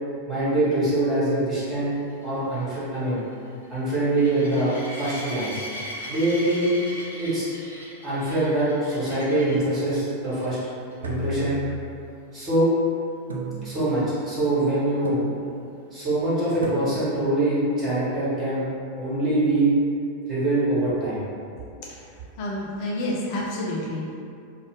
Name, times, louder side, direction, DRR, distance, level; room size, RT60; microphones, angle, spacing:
voice 1, 0.3-1.9 2.2-3.2 3.7-5.6 6.1-6.8 7.2-7.4 8.0-10.6 11.0-11.6 12.3-12.7 13.6-15.2 15.9-18.6 19.0-19.7 20.3-21.2, right 2 dB, 25° right, -11 dB, 1.4 m, -24 dB
sound 1, 1.8-9.7 10.3-10.6 10.9-11.0 11.4-11.5 15.1-15.2, equal, 80° left, 0.7 m, -38 dB
sound 2, 11.0-12.2 13.3-14.1 15.0-15.7 16.6-17.3, right 1 dB, 75° right, 0.4 m, -34 dB
voice 2, 22.4-24.1, left 1 dB, 45° left, -4 dB, 0.5 m, -29 dB
2.5 x 2.4 x 3.4 m, 2.5 s
figure-of-eight pair, 90°, 0 cm